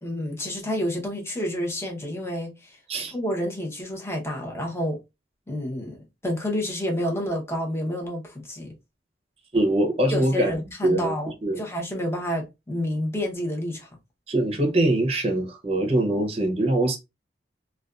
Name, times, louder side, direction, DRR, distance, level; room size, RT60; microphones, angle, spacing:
voice 1, 0.0-2.8 3.1-5.0 5.5-8.7 10.1-11.3 11.6-13.9, equal, 15° left, 0.7 m, -29 dB
voice 2, 9.5-10.6 10.8-11.1 11.4-11.6 14.3-17.0, right 1 dB, 35° right, 0.6 m, -23 dB
2.4 x 2.2 x 2.3 m
head